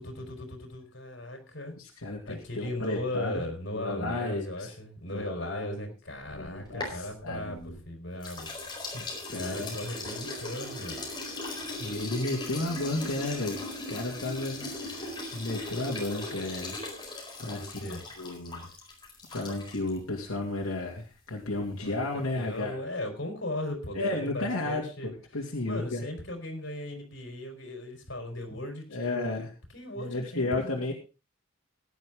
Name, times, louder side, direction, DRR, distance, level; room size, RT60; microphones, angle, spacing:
voice 1, 0.0-1.7 2.3-8.5 9.4-11.1 17.5-18.0 21.8-25.1 25.7-29.5 29.7-30.9, left 1 dB, 60° left, 4 dB, 4.4 m, -37 dB
voice 2, 1.8-3.4 3.7-4.7 5.1-5.8 6.3-7.8 8.9-9.8 11.8-16.8 17.4-17.9 18.2-18.7 19.3-22.8 23.9-26.0 28.9-29.5 30.0-30.9, left 2 dB, 80° left, -1 dB, 2.7 m, -33 dB
sound 1, 6.2-7.8 8.2-20.0, left 2 dB, 20° left, 4.4 m, -39 dB
16.5 x 11.0 x 3.8 m, 0.32 s
head